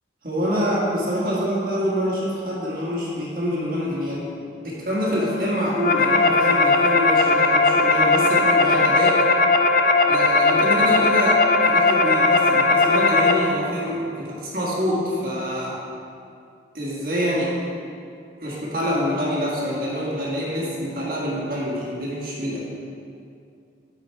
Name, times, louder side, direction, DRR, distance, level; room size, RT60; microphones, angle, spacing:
voice 1, 0.2-4.2 4.6-9.2 10.1-15.8 16.7-17.5 18.4-22.6, equal, 50° right, -5 dB, 1.6 m, -26 dB
sound 1, 5.5-13.3, left 3 dB, 45° left, 0.4 m, -18 dB
8.8 x 4.8 x 4.6 m, 2.5 s
head